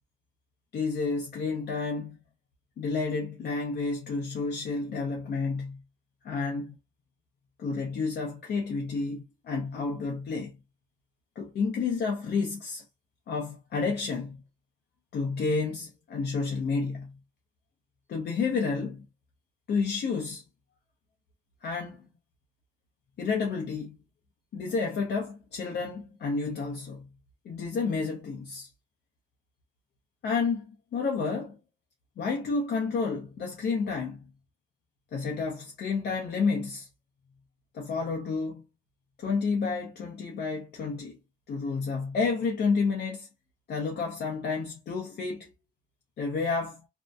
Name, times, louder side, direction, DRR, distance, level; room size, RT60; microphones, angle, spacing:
voice 1, 0.7-2.2 2.8-5.8 6.2-6.8 7.6-10.5 11.4-12.9 13.3-14.4 15.1-17.1 18.1-19.1 19.7-20.4 21.6-22.1 23.2-24.0 24.5-27.1 27.4-28.7 30.2-31.6 32.2-34.2 35.1-36.9 37.7-38.6 39.2-41.2 41.5-43.3 43.7-45.5 46.2-46.8, left 4 dB, 55° left, 0.6 m, -30 dB
2.6 x 2.1 x 2.3 m
cardioid pair, 90°, 20 cm